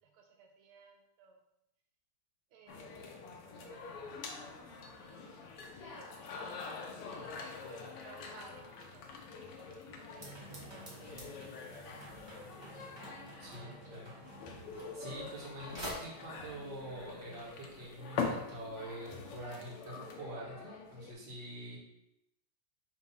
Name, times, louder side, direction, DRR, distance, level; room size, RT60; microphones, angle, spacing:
voice 1, 0.0-1.4 2.5-3.0 3.3-4.1 4.9-6.1 7.0-12.5 13.5-14.4, right 5 dB, 90° right, 2 dB, 1.6 m, -60 dB
sound 1, 2.7-21.1, left 4 dB, 85° left, 1.8 m, -45 dB
sound 2, 10.2-15.5 15.7-15.9, right 1 dB, 15° right, 1.0 m, -49 dB
voice 2, 13.4-14.1 14.7-21.8, right 1 dB, 55° right, -5 dB, 2.2 m, -45 dB
5.8 x 3.0 x 5.5 m, 0.86 s
omnidirectional pair, 2.4 m